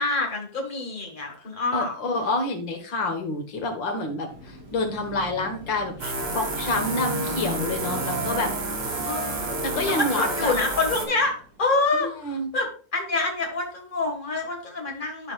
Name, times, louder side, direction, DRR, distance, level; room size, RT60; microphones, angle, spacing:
voice 1, 0.0-1.9 9.0-9.6 9.9-15.3, left 3 dB, 25° left, 2 dB, 1.8 m, -27 dB
voice 2, 1.7-8.5 9.6-10.5 12.2-12.5, left 2 dB, 75° left, 4 dB, 2.2 m, -28 dB
Car passing by / Traffic noise roadway noise / Engine, 4.3-11.6, left 1 dB, 70° right, 3.0 m, -38 dB
sound 1, 6.0-11.1, right 3 dB, 40° right, 1.3 m, -30 dB
13.0 x 4.9 x 2.4 m, 0.41 s
omnidirectional pair, 2.0 m